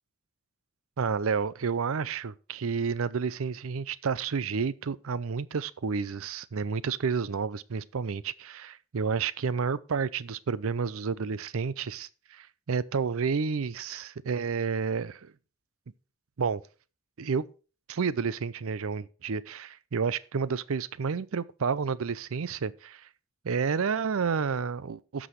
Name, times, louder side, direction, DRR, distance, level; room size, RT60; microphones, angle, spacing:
voice 1, 1.0-15.3 16.4-16.6 17.2-17.5 17.9-23.0 23.4-25.3, right 5 dB, 70° right, 0.5 m, -30 dB
16.5 x 6.1 x 3.1 m
head